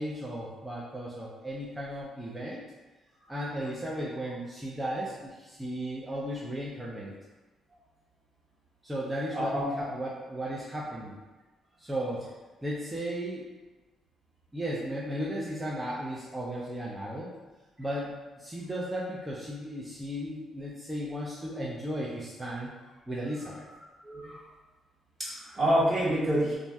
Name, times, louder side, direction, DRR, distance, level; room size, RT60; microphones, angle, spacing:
voice 1, 0.0-2.6 3.3-7.1 8.8-11.2 11.8-12.3 12.6-13.5 14.5-17.3 17.8-22.7 23.1-23.7, equal, 10° right, -6 dB, 0.5 m, -35 dB
voice 2, 9.3-9.9 24.0-24.4 25.2-26.5, equal, 30° right, -9 dB, 1.3 m, -27 dB
2.6 x 2.0 x 3.4 m, 1.2 s
cardioid pair, 90°, 0 cm